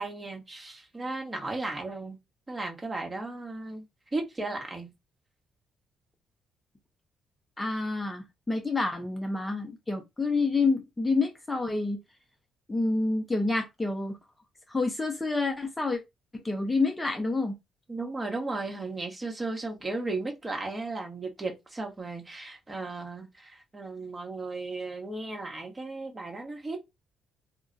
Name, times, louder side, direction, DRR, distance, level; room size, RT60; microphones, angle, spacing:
voice 1, 0.0-2.2 2.5-3.8 4.1-4.9 17.9-26.8, right 3 dB, 25° right, 1.1 m, -35 dB
voice 2, 7.6-12.0 12.7-14.2 14.7-16.0 16.3-17.5, left 3 dB, 15° left, 0.6 m, -28 dB
2.3 x 2.2 x 3.8 m
cardioid pair, 90°, 0 cm